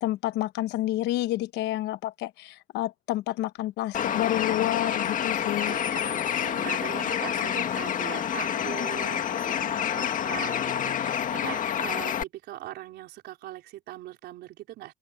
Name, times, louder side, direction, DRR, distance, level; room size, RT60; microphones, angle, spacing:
voice 1, 0.0-5.7, left 15 dB, 90° left, 1.1 m, -29 dB
Bird, 3.9-12.2, left 9 dB, 50° left, 2.0 m, -28 dB
voice 2, 5.6-14.9, right 15 dB, 80° right, 4.6 m, -41 dB
open air
cardioid pair, 110°, 17 cm